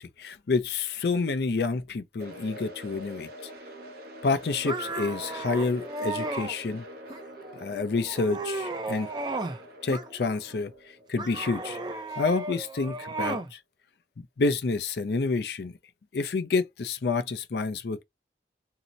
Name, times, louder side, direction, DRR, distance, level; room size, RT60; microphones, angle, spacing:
voice 1, 0.0-3.5 4.2-6.8 7.6-9.1 9.8-10.7 11.1-11.8 12.2-13.6 14.4-15.7 16.1-18.0, left 4 dB, 60° left, 0.4 m, -28 dB
sound 1, 2.2-12.3, equal, 55° right, 0.7 m, -45 dB
sound 2, 4.6-6.5 7.1-7.6 8.0-9.6 9.9-10.6 11.2-13.5, right 2 dB, 25° right, 0.4 m, -34 dB
2.7 x 2.0 x 3.7 m
head